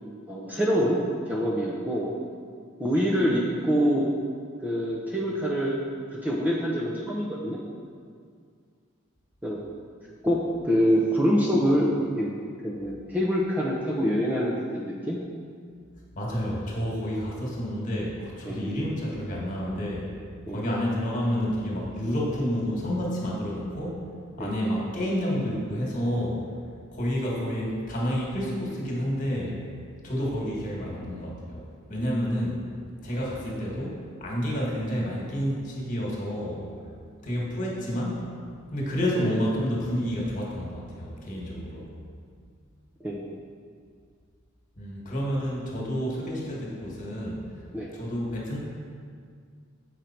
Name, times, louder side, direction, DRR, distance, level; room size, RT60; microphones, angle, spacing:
voice 1, 0.3-1.0 1.3-2.1 2.8-4.1 4.6-5.8 6.1-7.6 9.4-9.6 10.2-10.4 10.6-12.3 12.6-15.2 18.5-18.6 20.5-20.6 24.4-24.5 43.0-43.2 47.7-47.9, equal, 10° right, -5 dB, 0.6 m, -25 dB
voice 2, 16.2-20.1 20.5-24.1 24.4-26.4 26.9-29.6 30.0-32.7 33.0-36.7 37.2-38.2 38.7-41.9 44.8-47.6 47.9-48.6, equal, 40° left, -3 dB, 1.7 m, -29 dB
7.9 x 5.2 x 4.4 m, 2.1 s
head